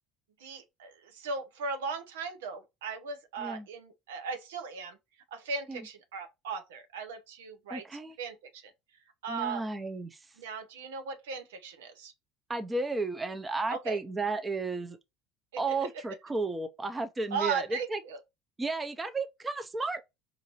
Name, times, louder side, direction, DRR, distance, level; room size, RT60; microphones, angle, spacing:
voice 1, 0.4-5.0 5.3-7.8 8.2-8.6 9.2-9.6 10.4-12.1 13.7-14.0 15.7-15.9 17.3-18.2, right 5 dB, 80° right, 0.7 m, -37 dB
voice 2, 7.7-8.2 9.3-10.2 12.5-15.0 15.6-18.0 18.6-20.0, right 3 dB, 20° right, 0.6 m, -33 dB
4.7 x 2.5 x 3.0 m
hypercardioid pair, 70°, 0 cm